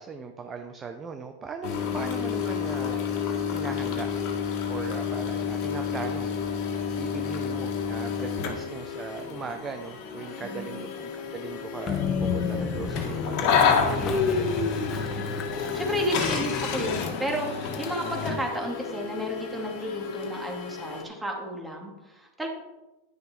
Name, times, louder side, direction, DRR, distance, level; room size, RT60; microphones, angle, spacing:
voice 1, 0.0-3.0 3.5-4.1 4.7-6.3 7.0-14.7, right 5 dB, 25° right, 6 dB, 0.8 m, -39 dB
sound 1, 1.6-21.0, left 6 dB, 50° left, 1.9 m, -30 dB
voice 2, 10.4-10.9 15.2-15.3 15.5-22.5, equal, 10° right, 0 dB, 2.5 m, -32 dB
Train, 11.9-17.1, left 5 dB, 30° left, 1.3 m, -30 dB
10.5 x 6.5 x 4.5 m, 1.1 s
hypercardioid pair, 105°, 0 cm